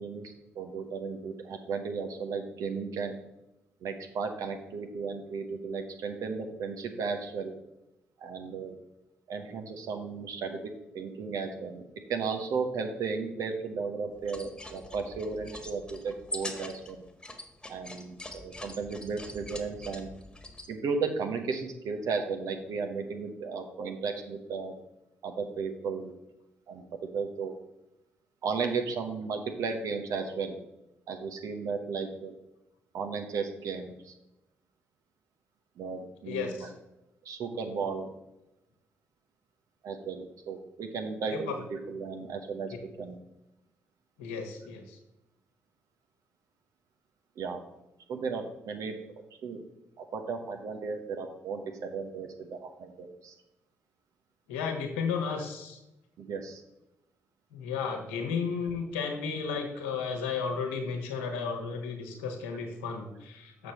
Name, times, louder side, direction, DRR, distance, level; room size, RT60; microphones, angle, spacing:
voice 1, 0.0-3.2 3.8-7.5 8.2-8.7 9.3-10.6 10.9-11.8 12.1-17.0 17.7-20.1 20.7-24.7 25.2-26.1 26.7-26.8 27.1-27.5 28.4-30.6 31.1-32.3 32.9-34.1 35.8-36.7 37.2-38.1 39.8-42.7 43.0-43.2 47.4-47.6 48.1-49.0 49.4-49.6 50.0-53.3 56.2-56.6, right 5 dB, 65° right, 5 dB, 1.0 m, -34 dB
sound 1, 14.2-20.7, left 1 dB, 15° left, 1.5 m, -43 dB
voice 2, 36.2-36.7 41.3-41.5 44.2-45.0 54.5-55.8 57.5-63.7, left 5 dB, 80° left, 3 dB, 1.1 m, -33 dB
6.6 x 6.4 x 4.3 m, 0.92 s
hypercardioid pair, 40°, 6 cm